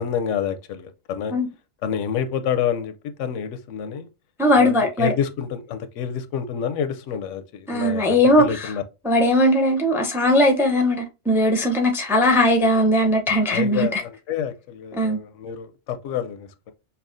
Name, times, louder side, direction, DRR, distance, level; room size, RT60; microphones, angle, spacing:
voice 1, 0.0-1.3 1.8-2.9 3.2-4.1 4.6-8.8 13.5-16.7, left 8 dB, 90° left, 0.9 m, -28 dB
voice 2, 4.4-5.1 7.7-8.7 9.0-14.0 14.9-15.2, left 1 dB, 5° right, 0.4 m, -19 dB
5.5 x 2.3 x 2.5 m
omnidirectional pair, 1.2 m